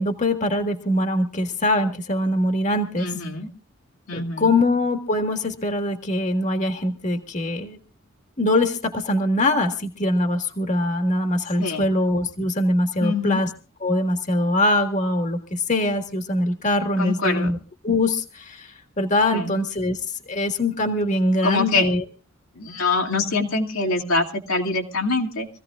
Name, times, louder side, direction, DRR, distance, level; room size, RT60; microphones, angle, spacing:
voice 1, 0.0-3.1 4.1-7.8 8.4-13.5 13.8-17.6 17.8-20.0 20.3-22.0, left 1 dB, 35° left, 5 dB, 1.6 m, -23 dB
voice 2, 3.0-3.5 4.1-4.5 11.6-11.9 13.0-13.4 17.0-17.5 19.3-19.6 21.4-21.9 22.6-25.5, left 3 dB, 90° left, 0 dB, 2.4 m, -24 dB
25.0 x 15.5 x 2.4 m, 0.35 s
head